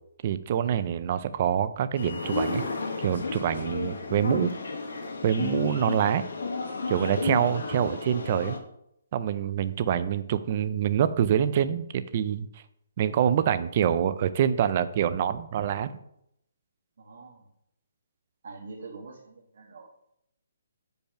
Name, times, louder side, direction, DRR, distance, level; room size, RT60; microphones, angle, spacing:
voice 1, 0.2-2.6 3.0-4.5 5.2-6.2 6.9-8.6 9.1-12.5 13.0-16.0, right 9 dB, 30° right, 12 dB, 0.4 m, -26 dB
sound 1, 1.9-8.6, left 4 dB, 75° left, 1.7 m, -32 dB
voice 2, 17.0-17.4 18.4-19.9, right 3 dB, 55° right, 0 dB, 1.3 m, -44 dB
6.7 x 5.3 x 5.8 m, 0.76 s
hypercardioid pair, 175°, 0 cm